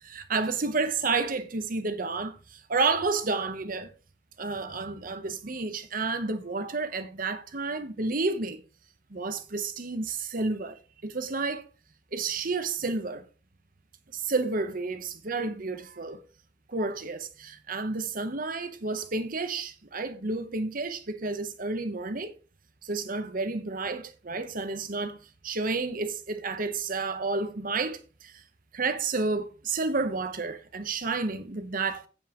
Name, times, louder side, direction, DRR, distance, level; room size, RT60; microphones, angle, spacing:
voice 1, 0.0-3.9 4.4-8.6 9.1-11.6 12.1-13.2 14.1-16.2 16.7-22.3 22.8-25.2 25.4-28.4 28.7-32.1, right 3 dB, 45° right, 1.0 m, -31 dB
16.0 x 5.5 x 3.0 m
head